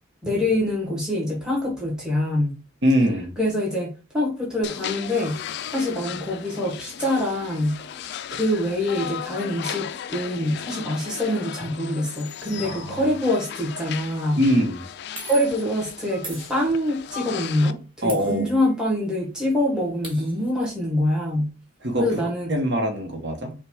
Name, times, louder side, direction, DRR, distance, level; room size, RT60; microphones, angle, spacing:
voice 1, 0.2-2.5 3.4-5.4 5.7-8.0 8.3-14.4 15.2-21.5 22.0-22.5, left 1 dB, 5° right, 1.1 m, -25 dB
voice 2, 2.8-3.3 12.6-13.1 14.4-14.8 18.0-18.5 21.8-23.5, equal, 60° right, 1.0 m, -23 dB
sound 1, 4.6-17.7, left 9 dB, 60° left, 0.3 m, -36 dB
sound 2, 13.9-14.1 15.2-15.7 16.2-17.1 18.1-19.0 19.3-19.4 19.6-20.5, right 2 dB, 25° right, 1.3 m, -40 dB
5.5 x 2.3 x 3.5 m
head